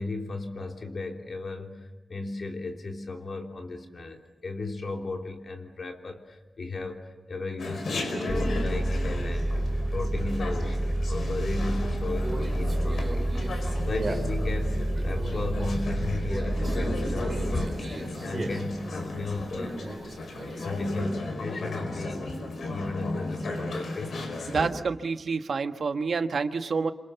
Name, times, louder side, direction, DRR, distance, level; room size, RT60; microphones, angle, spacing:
voice 1, 0.0-17.8 18.2-19.8 20.6-22.3 22.6-24.2, left 3 dB, 50° left, 2 dB, 3.3 m, -35 dB
Chatter, 7.6-24.7, left 2 dB, 85° left, 5.1 m, -35 dB
sound 1, 8.3-17.7, right 1 dB, ahead, 0.9 m, -29 dB
Conversation, 12.2-21.0, right 2 dB, 30° right, 4.6 m, -39 dB
voice 2, 24.5-26.9, right 5 dB, 65° right, 7 dB, 1.3 m, -28 dB
28.5 x 26.5 x 7.0 m, 1.1 s
wide cardioid pair, 175°, 0 cm